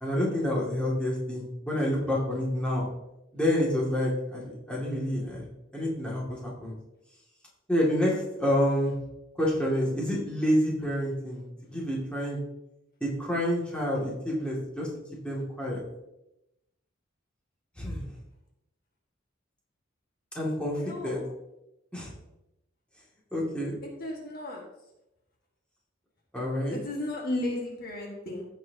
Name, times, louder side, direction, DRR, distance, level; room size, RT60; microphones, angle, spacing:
voice 1, 0.0-2.8 3.3-5.4 5.7-6.7 7.7-8.9 9.4-12.4 13.0-14.9 15.2-15.8 17.8-18.0 20.3-20.8 21.0-21.2 21.9-22.1 23.3-23.7 26.3-26.8, equal, 5° left, -5 dB, 2.3 m, -28 dB
voice 2, 20.7-21.3 23.8-24.6 26.7-28.5, left 1 dB, 50° left, -1 dB, 1.7 m, -34 dB
15.5 x 6.1 x 2.9 m, 0.90 s
head